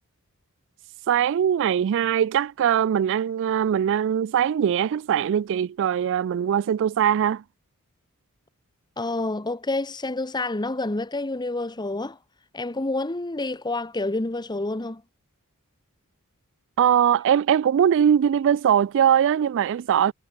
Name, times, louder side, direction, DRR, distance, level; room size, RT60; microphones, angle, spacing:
voice 1, 1.1-7.4 16.8-20.1, right 9 dB, 60° right, 0.3 m, -21 dB
voice 2, 9.0-12.2 12.5-15.0, left 2 dB, 20° left, 1.0 m, -28 dB
head